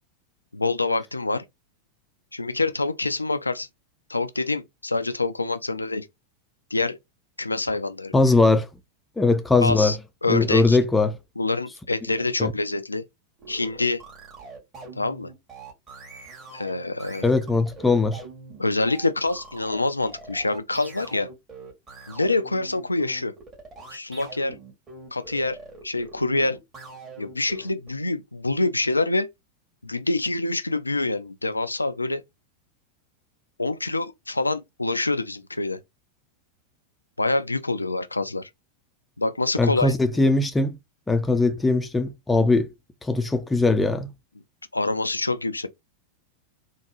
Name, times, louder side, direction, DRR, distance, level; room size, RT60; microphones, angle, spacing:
voice 1, 0.5-1.4 2.3-3.7 4.1-6.1 6.7-7.0 7.4-8.1 9.6-10.8 11.4-13.0 13.5-14.0 15.0-15.3 16.5-17.3 18.6-21.3 22.1-23.3 23.9-24.6 25.1-25.6 25.8-26.6 27.2-29.3 29.8-32.2 33.6-35.8 37.2-38.5 39.2-39.9 44.7-45.7, left 2 dB, 80° left, 0.3 m, -26 dB
voice 2, 8.1-8.7 9.2-10.0 10.3-11.2 12.4-12.5 17.2-18.2 39.6-40.8 41.1-42.7 43.0-44.1, left 3 dB, 10° left, 0.5 m, -20 dB
sound 1, 13.4-27.9, right 3 dB, 25° right, 1.8 m, -43 dB
3.5 x 2.2 x 2.9 m
figure-of-eight pair, 90°, 0 cm